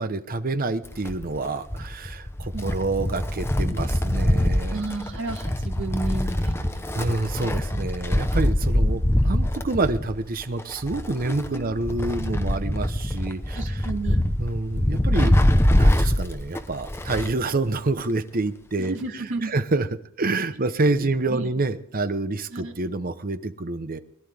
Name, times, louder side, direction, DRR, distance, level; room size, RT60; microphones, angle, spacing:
voice 1, 0.0-4.8 6.9-13.6 14.4-15.4 15.8-19.9 20.2-24.0, right 2 dB, 45° right, 11 dB, 0.8 m, -27 dB
Wind, 0.8-17.4 17.7-17.8 18.8-18.9, left 1 dB, 10° left, 0.9 m, -24 dB
voice 2, 2.5-2.9 4.7-7.5 11.2-11.7 13.5-14.2 18.8-19.5 20.9-21.5 22.5-22.7, right 2 dB, 60° right, 0 dB, 2.7 m, -33 dB
22.0 x 11.5 x 3.5 m, 0.77 s
head